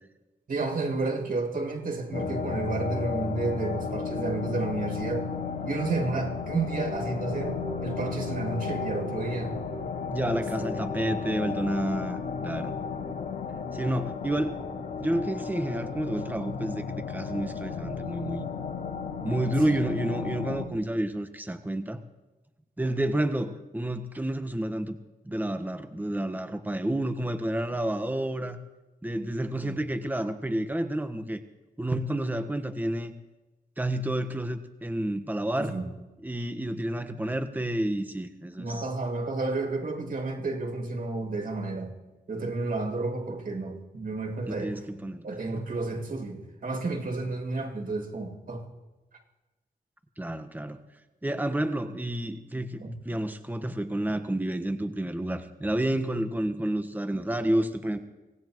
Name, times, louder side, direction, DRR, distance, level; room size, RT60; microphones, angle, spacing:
voice 1, 0.5-5.3 5.6-9.5 10.5-10.7 19.6-20.0 29.6-29.8 35.6-35.9 38.6-41.9 42.3-44.8 45.2-48.6 52.8-52.9, right 3 dB, 60° right, 1 dB, 7.2 m, -31 dB
sound 1, 2.1-20.7, left 5 dB, 75° left, 2.5 m, -34 dB
voice 2, 10.1-12.2 12.4-12.8 13.7-14.6 15.0-18.4 19.2-22.0 22.8-24.9 25.2-28.6 29.0-31.4 31.8-33.1 33.8-35.8 36.2-38.8 44.5-45.3 50.2-50.8 51.2-58.0, right 1 dB, 10° right, 8 dB, 1.4 m, -30 dB
25.0 x 18.0 x 3.1 m, 1.1 s
cardioid pair, 60°, 17 cm